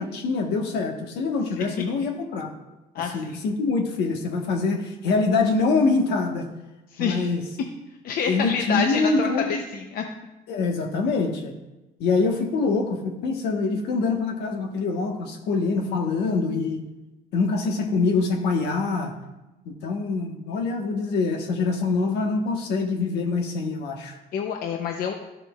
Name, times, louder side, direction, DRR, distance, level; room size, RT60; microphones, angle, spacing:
voice 1, 0.0-2.5 3.1-6.5 7.0-7.4 8.3-9.6 10.5-11.5 12.0-16.8 17.3-19.1 19.6-24.2, left 4 dB, 80° left, 2 dB, 1.3 m, -24 dB
voice 2, 2.9-3.4 6.9-7.3 8.0-10.0 24.3-25.1, left 6 dB, 60° left, 3 dB, 0.7 m, -28 dB
12.5 x 6.8 x 2.4 m, 1.0 s
cardioid pair, 110°, 17 cm